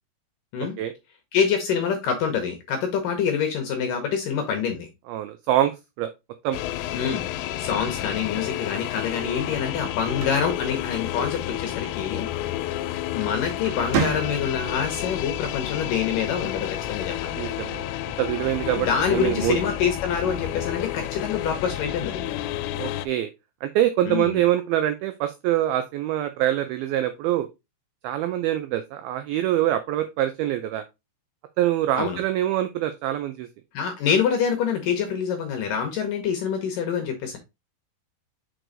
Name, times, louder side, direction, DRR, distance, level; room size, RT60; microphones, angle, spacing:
voice 1, 1.3-4.9 6.9-12.3 13.1-17.4 18.8-22.4 24.0-24.4 32.0-32.2 33.7-37.4, left 7 dB, 70° left, 5 dB, 2.1 m, -26 dB
voice 2, 5.1-5.7 6.0-6.1 6.4-6.6 17.4-17.9 18.2-19.6 22.7-23.3 23.6-27.5 28.0-30.8 31.6-33.5, right 13 dB, 85° right, 9 dB, 2.1 m, -24 dB
sound 1, 6.5-23.1, left 13 dB, 90° left, 2.8 m, -30 dB
sound 2, 9.9-11.5 12.9-13.2 13.6-14.8, right 5 dB, 70° right, 2.5 m, -30 dB
6.4 x 4.6 x 3.8 m, 0.23 s
omnidirectional pair, 5.0 m